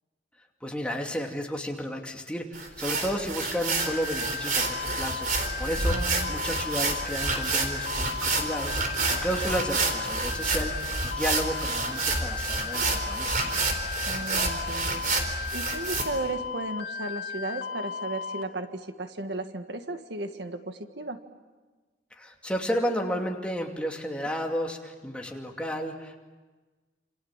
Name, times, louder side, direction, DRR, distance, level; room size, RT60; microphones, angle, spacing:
voice 1, 0.6-5.3 5.6-6.0 6.3-13.4 22.1-26.2, equal, 5° left, 1 dB, 2.5 m, -32 dB
sound 1, 2.5-16.0, right 3 dB, 50° right, 4.2 m, -29 dB
sound 2, 3.8-18.4, left 6 dB, 80° left, 2.3 m, -35 dB
voice 2, 5.9-6.3 14.1-21.2, right 2 dB, 75° right, 7 dB, 1.7 m, -35 dB
28.0 x 27.5 x 7.4 m, 1.3 s
head